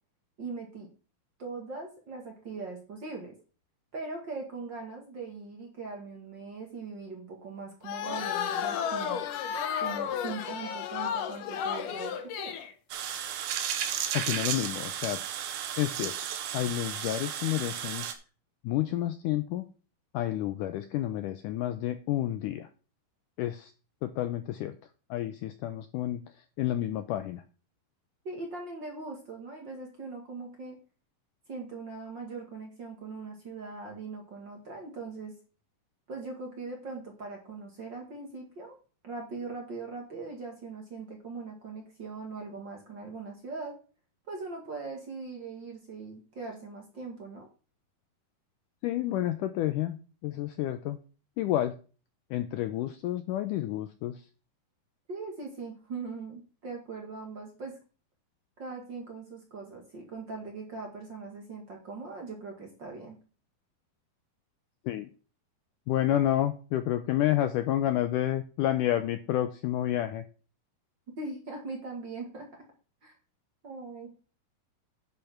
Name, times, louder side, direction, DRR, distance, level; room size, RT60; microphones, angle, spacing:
voice 1, 0.4-0.9 1.4-3.3 3.9-9.2 9.8-12.5 28.2-30.8 31.5-35.3 36.1-38.8 39.0-43.7 44.3-47.5 55.1-57.8 58.6-63.2 71.2-72.5 73.0-73.1 73.6-74.1, right 3 dB, 40° right, 1 dB, 1.9 m, -40 dB
sound 1, 7.8-12.7, left 8 dB, 70° left, 2.2 m, -32 dB
sound 2, 12.9-18.1, right 9 dB, 80° right, 3.0 m, -34 dB
voice 2, 14.1-15.2 15.8-16.2 16.5-18.1 18.6-19.7 20.1-22.7 23.4-23.7 24.0-24.7 25.1-27.4 48.8-50.0 50.2-51.0 51.4-51.8 52.3-54.3 64.9-65.1 65.9-70.3, left 13 dB, 90° left, 10 dB, 1.8 m, -30 dB
10.5 x 5.5 x 5.8 m, 0.36 s
omnidirectional pair, 4.4 m